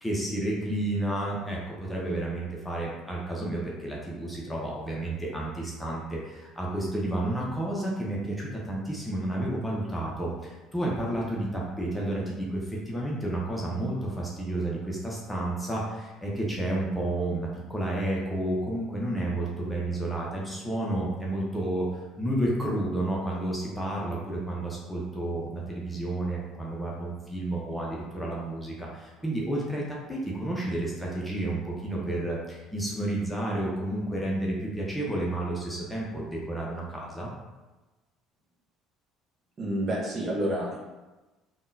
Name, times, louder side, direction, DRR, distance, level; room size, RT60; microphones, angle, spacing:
voice 1, 0.0-37.3, right 1 dB, 5° left, -4 dB, 0.8 m, -31 dB
voice 2, 39.6-40.8, right 1 dB, 35° right, -3 dB, 0.9 m, -29 dB
3.6 x 2.3 x 2.6 m, 1.2 s
figure-of-eight pair, 60°, 0 cm